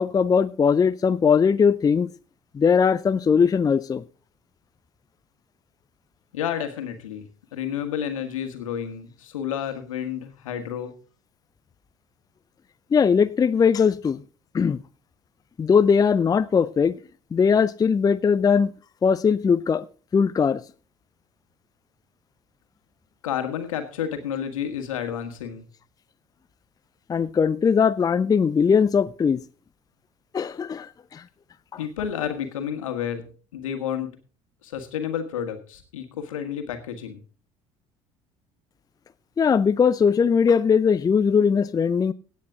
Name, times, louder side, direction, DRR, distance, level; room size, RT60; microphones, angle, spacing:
voice 1, 0.0-2.1 2.5-4.0 12.9-14.2 14.5-14.8 15.6-17.0 17.3-18.7 19.0-19.8 20.1-20.6 27.1-29.4 30.3-31.2 31.7-31.8 39.4-42.1, left 6 dB, 20° left, 0.5 m, -20 dB
voice 2, 6.3-10.9 23.2-25.7 31.8-33.2 33.5-34.1 34.6-37.2, left 9 dB, 75° left, 1.7 m, -30 dB
17.0 x 8.5 x 3.8 m
figure-of-eight pair, 60°, 17 cm